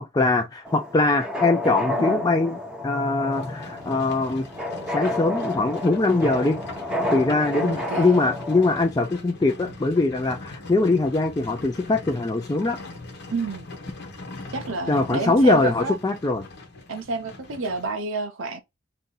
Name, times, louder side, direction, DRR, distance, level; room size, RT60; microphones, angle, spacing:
voice 1, 0.0-2.6 2.8-4.5 4.9-6.6 7.1-12.8 14.9-16.5, left 2 dB, 20° left, 0.3 m, -22 dB
sound 1, 0.6-8.8, left 1 dB, 5° right, 0.7 m, -30 dB
Livestock farm animals working animals, 3.3-17.9, left 2 dB, 60° left, 1.0 m, -41 dB
voice 2, 7.5-8.2 13.3-13.7 14.5-16.0 16.9-18.6, right 3 dB, 90° right, 0.6 m, -30 dB
2.7 x 2.6 x 3.8 m
head